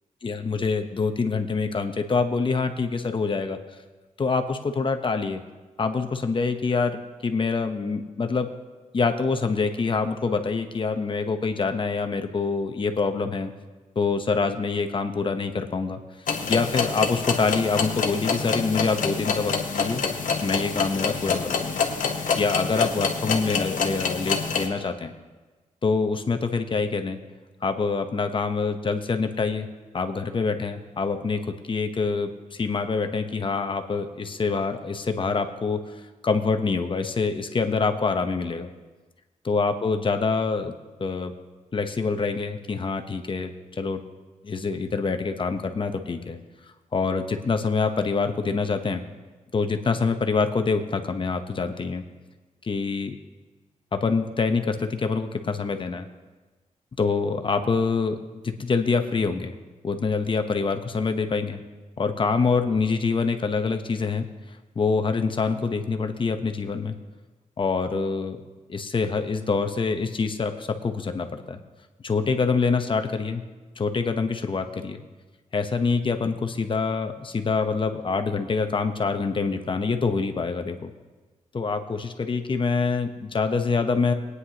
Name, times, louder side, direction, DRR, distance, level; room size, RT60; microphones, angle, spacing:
voice 1, 0.2-3.6 4.2-5.4 5.8-8.5 8.9-13.5 14.0-16.0 16.5-20.0 20.4-21.8 22.4-25.1 25.8-27.2 27.6-29.7 29.9-31.4 31.7-35.8 36.2-38.7 39.4-40.7 41.0-41.3 41.7-44.0 44.4-46.4 46.9-49.0 49.5-52.0 52.6-53.1 53.9-56.1 57.0-58.1 58.4-59.5 59.8-61.6 62.0-64.3 64.7-67.0 67.6-68.4 68.7-71.6 72.0-73.4 73.8-75.0 75.5-80.9 81.5-84.1, left 4 dB, 40° left, 7 dB, 0.9 m, -25 dB
sound 1, 16.3-24.7, left 5 dB, 85° left, 1.1 m, -27 dB
21.0 x 9.6 x 2.9 m, 1.3 s
wide cardioid pair, 125°, 13 cm